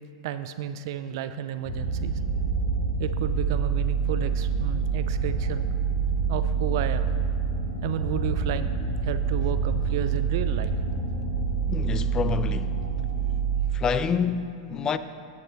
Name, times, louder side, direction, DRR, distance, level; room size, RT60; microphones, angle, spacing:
voice 1, 0.2-2.2 3.0-5.8 6.3-7.1 7.8-8.7 9.0-10.7, right 10 dB, 55° right, 0.4 m, -32 dB
sound 1, 1.7-13.6, right 5 dB, 50° left, 1.6 m, -26 dB
voice 2, 11.7-12.9 13.7-15.0, left 6 dB, 25° left, 0.4 m, -28 dB
9.7 x 8.1 x 4.0 m
hypercardioid pair, 100°, 3 cm